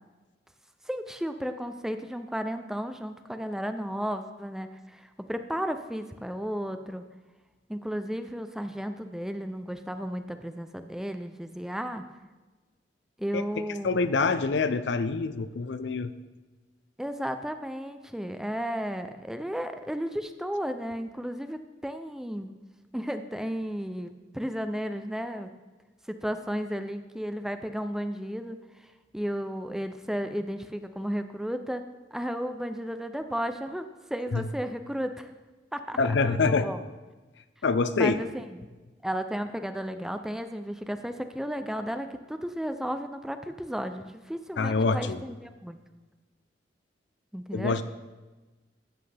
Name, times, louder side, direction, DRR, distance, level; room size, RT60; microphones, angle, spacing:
voice 1, 0.9-7.0 7.7-12.0 13.2-14.2 17.0-22.5 22.9-25.5 26.1-28.6 29.1-31.8 32.1-35.3 35.7-36.8 37.9-38.7 39.0-45.8 47.3-47.8, equal, 5° right, 8 dB, 0.4 m, -34 dB
voice 2, 13.8-16.1 34.3-34.4 36.0-36.7 37.6-38.1 44.6-45.2 47.5-47.8, left 4 dB, 70° left, 12 dB, 0.5 m, -25 dB
12.5 x 8.1 x 3.4 m, 1.2 s
head